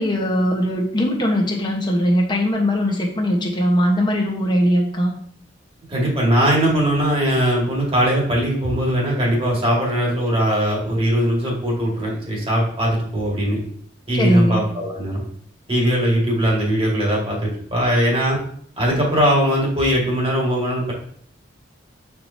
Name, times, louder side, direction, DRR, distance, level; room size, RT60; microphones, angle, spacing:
voice 1, 0.0-5.1 14.2-14.6, equal, 25° left, 0 dB, 1.1 m, -20 dB
voice 2, 5.9-13.6 14.1-15.2 15.7-18.4 18.8-20.9, equal, 30° right, -3 dB, 1.9 m, -20 dB
8.4 x 4.6 x 2.7 m, 0.62 s
head